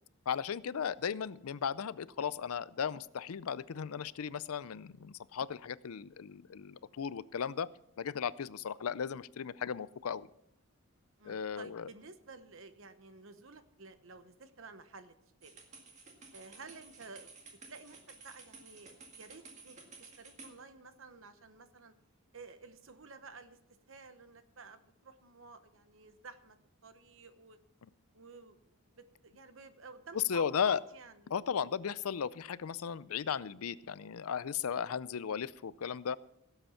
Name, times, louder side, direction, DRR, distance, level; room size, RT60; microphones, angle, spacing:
voice 1, 0.3-7.7 8.0-10.3 11.2-11.9 30.1-30.8 31.3-36.2, left 7 dB, 80° left, 19 dB, 0.5 m, -36 dB
voice 2, 11.2-15.1 15.4-15.6 16.3-17.3 17.7-21.9 22.3-23.6 23.9-26.6 26.8-27.6 28.1-31.3, right 4 dB, 65° right, 10 dB, 1.1 m, -52 dB
sound 1, 15.4-20.5, right 4 dB, 30° right, 2.0 m, -54 dB
17.0 x 8.0 x 5.7 m, 0.77 s
head